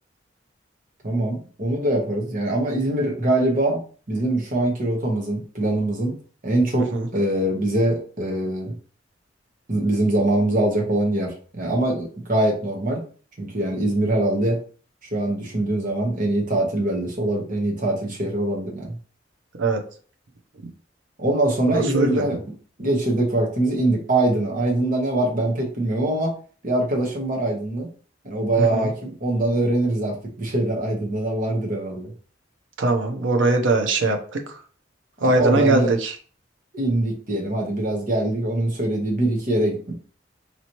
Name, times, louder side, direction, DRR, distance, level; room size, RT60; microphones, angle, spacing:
voice 1, 1.0-3.8 4.1-6.1 6.4-8.7 9.7-13.0 13.4-14.6 15.1-18.9 21.2-22.4 22.8-26.3 26.6-27.9 28.2-32.1 35.2-35.9 36.7-39.9, right 1 dB, 45° right, 0 dB, 1.1 m, -23 dB
voice 2, 6.8-7.1 19.6-19.8 20.6-20.7 21.7-22.3 28.6-28.9 32.8-34.6 35.2-36.1, right 2 dB, 85° right, 5 dB, 0.7 m, -21 dB
4.0 x 3.0 x 3.0 m, 0.42 s
head